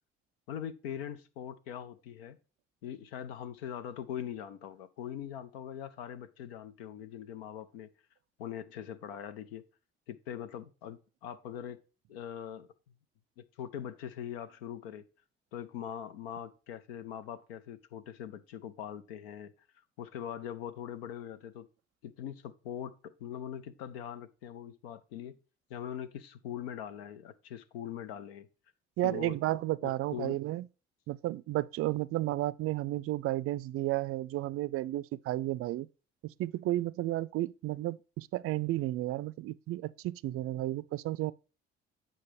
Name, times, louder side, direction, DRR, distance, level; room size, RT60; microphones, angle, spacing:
voice 1, 0.5-2.4 2.8-7.9 8.4-9.6 10.1-11.8 12.1-12.7 13.4-15.0 15.5-19.5 20.0-21.7 22.0-25.4 25.7-28.5 29.0-29.3 29.8-30.4, left 9 dB, 75° left, 0.7 m, -42 dB
voice 2, 29.0-30.7 31.1-35.9 36.2-41.3, right 16 dB, 45° right, 0.4 m, -32 dB
8.6 x 5.2 x 3.2 m
figure-of-eight pair, 50°, 31 cm